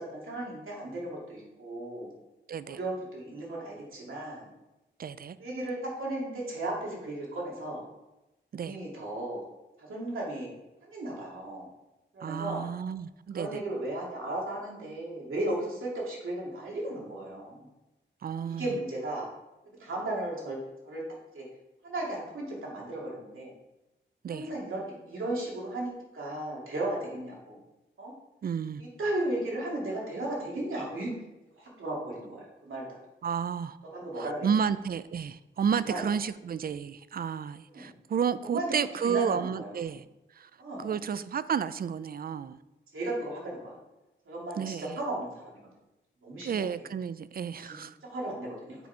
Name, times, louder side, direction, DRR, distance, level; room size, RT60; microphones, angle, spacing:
voice 1, 0.0-2.1 2.6-4.5 5.4-7.8 8.6-9.4 9.8-10.5 10.8-11.7 12.1-12.6 13.3-17.7 18.4-19.2 19.8-20.6 20.8-21.0 21.3-21.5 21.8-23.5 24.3-27.6 28.0-28.1 28.8-31.1 31.6-32.8 33.9-34.5 35.9-36.0 37.7-37.9 38.4-39.8 40.6-40.9 42.9-43.7 44.3-45.5 46.2-46.6 47.6-48.8, right 1 dB, 85° right, -4 dB, 2.2 m, -35 dB
voice 2, 2.5-2.8 5.0-5.4 8.5-8.8 12.2-13.6 18.2-18.7 24.2-24.5 28.4-28.8 33.2-33.8 34.1-40.0 40.3-40.5 40.8-42.6 44.6-45.0 46.4-48.0, right 7 dB, 45° right, 15 dB, 0.4 m, -31 dB
6.9 x 4.7 x 4.3 m, 0.98 s
cardioid pair, 75°, 20 cm